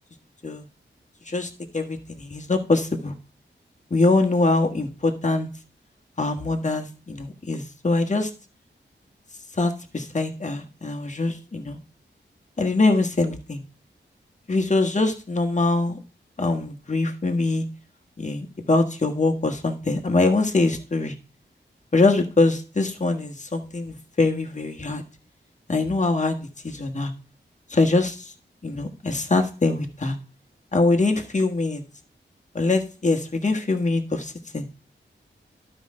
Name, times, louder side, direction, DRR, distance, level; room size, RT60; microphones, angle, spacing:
voice 1, 1.3-3.1 3.9-5.5 6.2-8.3 9.6-11.8 12.6-13.6 14.5-16.0 16.4-17.6 18.2-21.1 21.9-25.0 25.7-26.4 26.6-27.1 27.7-28.3 28.6-30.1 30.7-31.8 32.5-34.7, left 3 dB, 40° left, 4 dB, 1.5 m, -23 dB
12.0 x 5.1 x 3.7 m, 0.36 s
wide cardioid pair, 75°, 20 cm